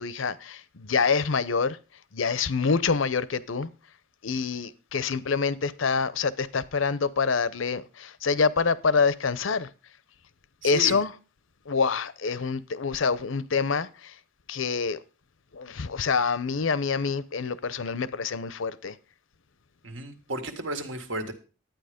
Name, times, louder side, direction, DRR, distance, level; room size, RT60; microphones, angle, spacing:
voice 1, 0.0-1.8 2.1-3.7 4.2-9.7 10.6-11.2 11.7-14.2 14.5-15.0 15.5-19.0, left 5 dB, 75° left, 0.7 m, -26 dB
voice 2, 10.6-11.0 19.8-21.3, right 1 dB, 70° right, 1.9 m, -33 dB
11.5 x 9.2 x 5.1 m
head